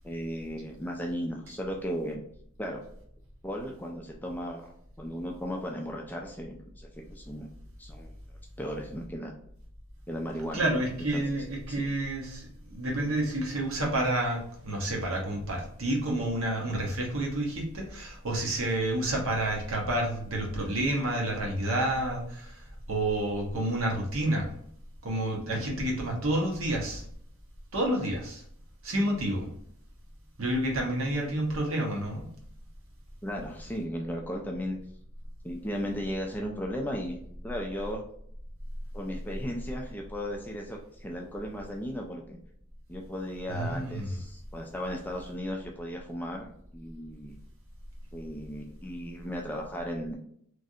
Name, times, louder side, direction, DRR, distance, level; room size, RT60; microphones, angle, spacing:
voice 1, 0.0-2.2 2.6-2.8 3.4-4.7 5.0-7.5 7.8-8.1 8.6-9.3 10.1-10.8 11.1-11.2 11.7-11.8 25.5-25.7 33.2-34.8 35.4-38.0 38.9-42.4 42.9-47.4 48.1-50.2, equal, 10° left, 0 dB, 0.3 m, -36 dB
voice 2, 10.5-24.5 25.0-27.0 27.7-28.4 28.8-29.5 30.4-32.3 43.5-44.2, right 1 dB, 65° right, 0 dB, 1.0 m, -29 dB
3.1 x 2.5 x 2.7 m, 0.66 s
head